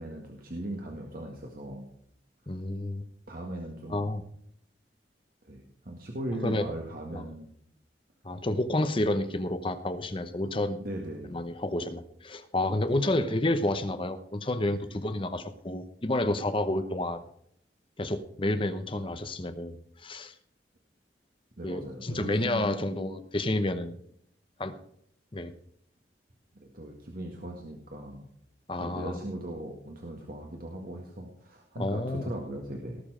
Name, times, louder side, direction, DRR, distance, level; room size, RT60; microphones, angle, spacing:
voice 1, 0.0-1.9 3.3-4.0 5.5-7.5 10.8-11.4 12.9-13.1 21.6-22.7 26.6-28.3 28.8-33.0, right 1 dB, 55° right, 0 dB, 1.8 m, -38 dB
voice 2, 2.5-3.0 3.9-4.2 6.4-6.7 7.1-7.2 8.2-10.8 11.3-17.2 18.0-20.3 21.6-24.0 24.6-24.8 25.3-25.5 28.7-29.2 31.8-32.3, left 1 dB, 30° left, 10 dB, 0.9 m, -30 dB
19.0 x 7.0 x 5.0 m, 0.68 s
head